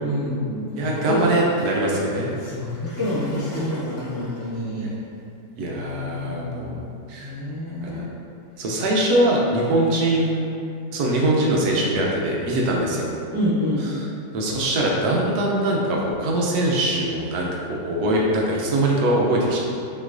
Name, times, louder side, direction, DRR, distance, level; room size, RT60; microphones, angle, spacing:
voice 1, 0.0-1.3 2.4-4.9 5.7-6.8 7.2-8.1 13.3-13.8, left 1 dB, 10° right, -14 dB, 1.0 m, -27 dB
Gurgling / Toilet flush, 0.8-4.5, left 1 dB, 70° left, 2.1 m, -37 dB
voice 2, 0.8-2.3 5.6-7.3 7.8-8.0 8.6-10.5 10.9-13.1 13.8-14.1 14.3-19.6, right 1 dB, 65° right, -3 dB, 1.0 m, -22 dB
5.4 x 3.1 x 2.5 m, 2.5 s
omnidirectional pair, 2.1 m